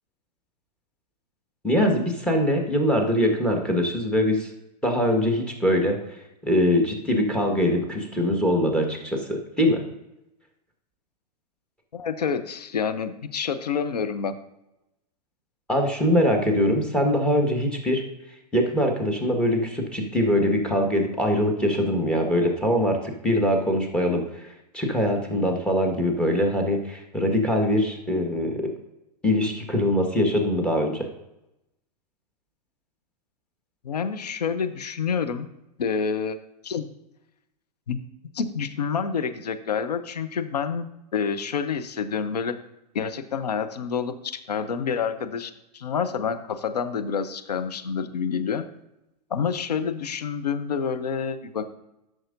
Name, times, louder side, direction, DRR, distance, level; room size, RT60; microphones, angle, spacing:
voice 1, 1.6-4.5 4.8-6.0 6.4-9.8 15.7-18.0 18.5-24.5 24.7-28.7 29.2-31.1, left 1 dB, 5° left, 2 dB, 1.5 m, -23 dB
voice 2, 11.9-14.4 33.8-35.5 35.8-36.4 36.6-36.9 37.9-38.0 38.3-42.5 42.9-48.6 49.3-51.7, left 6 dB, 70° left, 9 dB, 0.8 m, -28 dB
13.0 x 6.4 x 2.6 m, 0.89 s
figure-of-eight pair, 100°, 21 cm